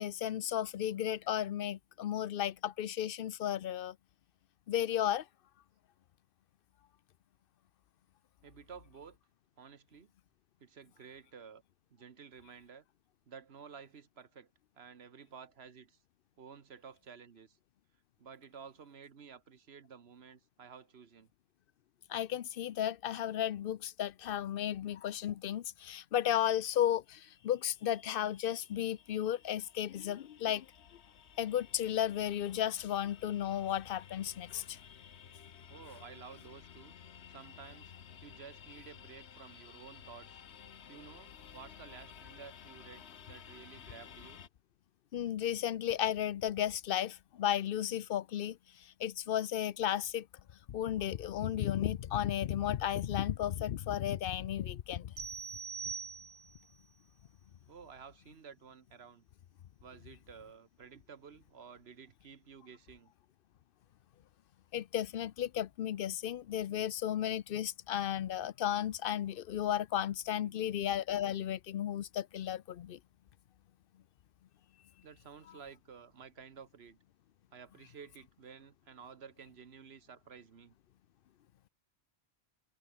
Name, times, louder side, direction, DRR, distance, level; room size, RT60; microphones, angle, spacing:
voice 1, 0.0-4.0 4.7-5.2 22.1-30.7 31.4-34.8 45.1-48.6 49.0-50.3 50.7-55.1 64.7-73.0, left 11 dB, 60° left, 0.8 m, -34 dB
voice 2, 8.4-9.2 9.6-10.1 10.6-11.6 11.9-12.8 13.3-14.5 14.7-16.0 16.4-17.6 18.2-21.3 35.7-36.9 37.3-37.9 38.2-40.4 40.9-44.4 57.7-59.2 59.8-63.1 70.4-70.6 75.0-77.0 77.5-80.7, right 6 dB, 70° right, 1.4 m, -53 dB
sound 1, 27.1-44.5, left 8 dB, 80° left, 1.3 m, -55 dB
sound 2, 55.2-56.7, right 6 dB, 90° right, 1.8 m, -42 dB
omnidirectional pair, 1.1 m